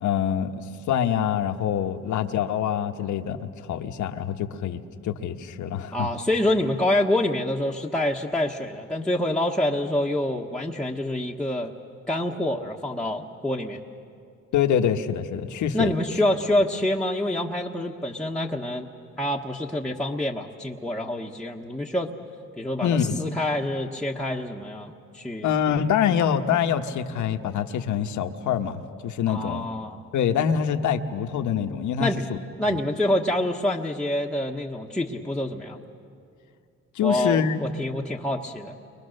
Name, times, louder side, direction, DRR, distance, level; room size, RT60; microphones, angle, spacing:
voice 1, 0.0-6.1 14.5-15.9 22.8-23.2 25.4-29.7 30.1-32.1 32.7-32.8 36.9-37.6, left 8 dB, 75° left, 6 dB, 1.2 m, -25 dB
voice 2, 5.9-11.7 12.1-13.8 15.7-18.9 19.2-22.1 22.6-25.5 29.3-30.0 32.0-32.2 32.6-35.8 37.0-38.8, left 1 dB, 5° left, -2 dB, 1.3 m, -26 dB
30.0 x 23.5 x 6.6 m, 2.4 s
cardioid pair, 90°, 30 cm